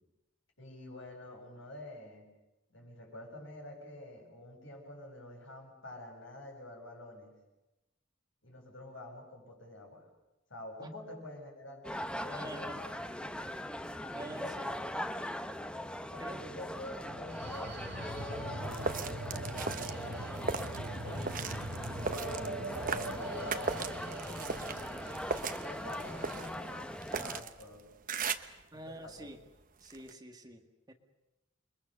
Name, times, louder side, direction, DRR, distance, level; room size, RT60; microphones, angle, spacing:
voice 1, 0.6-2.3 2.7-7.4 8.4-10.1 10.5-12.9 14.0-14.8 16.0-21.5 22.0-25.3 25.6-27.9 28.7-29.3, left 1 dB, 75° left, 1 dB, 7.9 m, -48 dB
sound 1, 11.8-27.4, left 1 dB, 5° left, 0.9 m, -41 dB
voice 2, 12.3-12.8 14.1-14.7 16.2-16.4 17.0-17.1 28.7-29.4 29.8-30.9, right 1 dB, 20° right, 4 dB, 2.0 m, -47 dB
sound 2, 17.0-26.8, right 2 dB, 60° right, 2.8 m, -42 dB
sound 3, 18.6-28.6 29.1-30.1, right 5 dB, 45° right, 1.0 m, -39 dB
28.5 x 23.0 x 6.9 m, 1.0 s
head